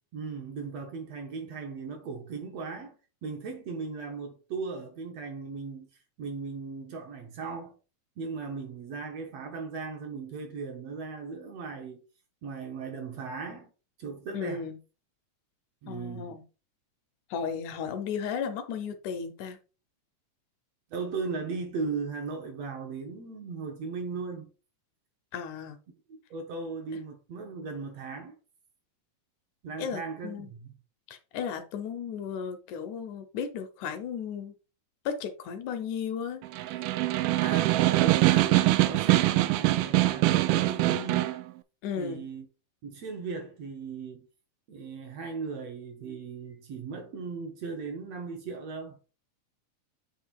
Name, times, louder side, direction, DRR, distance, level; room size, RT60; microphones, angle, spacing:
voice 1, 0.1-2.9 3.2-5.9 6.2-7.8 8.2-12.0 12.4-13.7 14.0-14.7 15.8-16.4 20.9-24.5 26.1-28.4 29.6-30.8 37.4-41.3 42.0-42.5 42.8-44.3 44.7-49.0, right 4 dB, 65° right, 1.9 m, -37 dB
voice 2, 14.3-14.8 15.9-16.4 17.3-19.6 25.3-25.8 29.8-30.5 31.1-34.5 35.1-36.9 41.8-42.2, left 7 dB, 75° left, 2.1 m, -35 dB
Snare drum, 36.4-41.4, right 17 dB, 85° right, 2.2 m, -23 dB
8.1 x 3.3 x 4.6 m
omnidirectional pair, 3.7 m